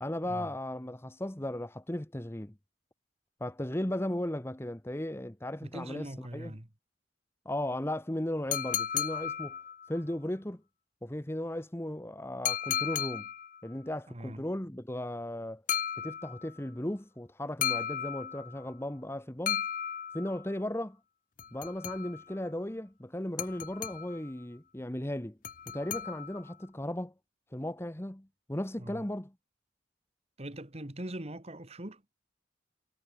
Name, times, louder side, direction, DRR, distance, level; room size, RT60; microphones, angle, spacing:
voice 1, 0.0-2.5 3.4-6.6 7.4-9.6 9.9-10.6 11.0-13.3 13.6-15.6 16.0-19.6 20.1-21.0 21.5-25.4 25.7-27.1 27.5-29.3, left 1 dB, 15° left, 1.1 m, -36 dB
voice 2, 5.6-6.7 14.1-14.5 28.8-29.0 30.4-32.1, right 1 dB, 35° right, 2.1 m, -42 dB
sound 1, 8.5-10.0 12.5-13.6 15.7-16.6 17.6-18.6 19.5-20.5 21.4-22.4 23.4-24.3 25.4-26.5, left 9 dB, 45° left, 0.7 m, -35 dB
head